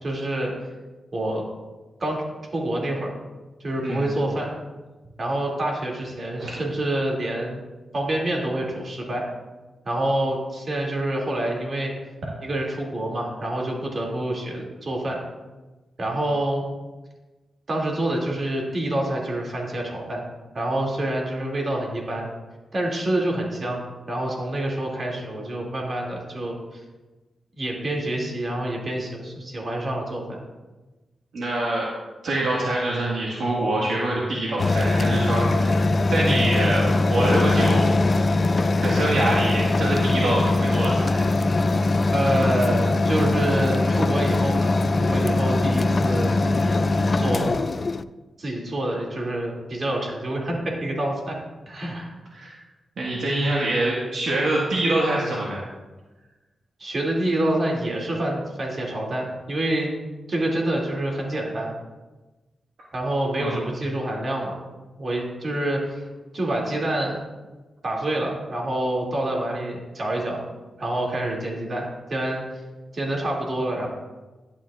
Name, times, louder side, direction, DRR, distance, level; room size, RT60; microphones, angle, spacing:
voice 1, 0.0-0.5 1.1-1.4 2.0-2.2 2.5-3.1 3.6-4.5 5.2-7.6 7.9-9.3 9.8-11.9 12.4-15.2 16.0-16.6 17.7-20.2 20.5-22.3 22.7-26.8 27.6-30.4 42.1-46.8 47.1-47.6 48.4-51.4 51.7-52.2 56.8-59.9 60.3-61.7 62.9-64.6 65.0-66.0 66.3-67.2 67.8-70.4 70.8-72.4 72.9-73.9, right 1 dB, 50° right, -1 dB, 2.5 m, -27 dB
voice 2, 31.3-31.9 32.2-37.9 38.8-41.2 52.3-52.6 53.0-55.6 63.4-63.6, right 1 dB, 75° right, -4 dB, 1.6 m, -25 dB
sound 1, 34.6-48.0, left 2 dB, 45° left, 0.3 m, -21 dB
11.5 x 9.0 x 2.4 m, 1.2 s
cardioid pair, 60°, 0 cm